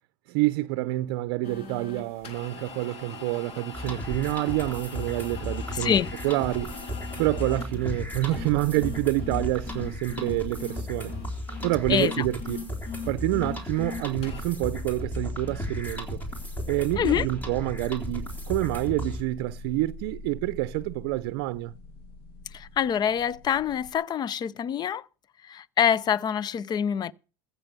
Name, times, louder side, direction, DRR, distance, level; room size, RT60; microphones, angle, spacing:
voice 1, 0.3-5.9 6.2-6.7 7.2-11.1 11.6-12.7 13.1-16.2 16.7-21.7, right 18 dB, 75° right, 0.5 m, -27 dB
sound 1, 1.4-14.4, left 5 dB, 55° left, 2.9 m, -40 dB
sound 2, 3.7-19.2, left 1 dB, 15° left, 3.7 m, -35 dB
voice 2, 5.7-6.1 11.9-12.2 17.0-17.3 22.5-25.0 25.4-27.1, left 8 dB, 35° left, 0.5 m, -25 dB
sound 3, 5.8-23.9, left 2 dB, 85° left, 2.6 m, -44 dB
15.0 x 6.9 x 6.7 m
supercardioid pair, 105°, 13 cm